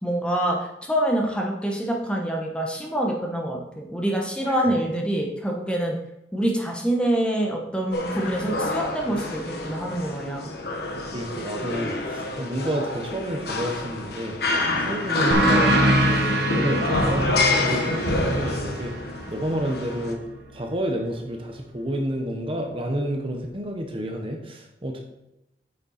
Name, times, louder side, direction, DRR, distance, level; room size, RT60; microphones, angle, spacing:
voice 1, 0.0-0.6 0.9-5.9 6.3-10.5, right 1 dB, 5° left, 0 dB, 1.1 m, -26 dB
sound 1, 7.9-20.1, left 2 dB, 60° left, 1.3 m, -27 dB
voice 2, 11.1-14.4 14.8-15.8 16.1-18.9 19.3-20.2 20.5-25.0, equal, 30° right, 3 dB, 1.0 m, -30 dB
sound 2, 15.3-20.5, right 1 dB, 65° right, 1.4 m, -25 dB
8.7 x 6.7 x 4.2 m, 0.89 s
head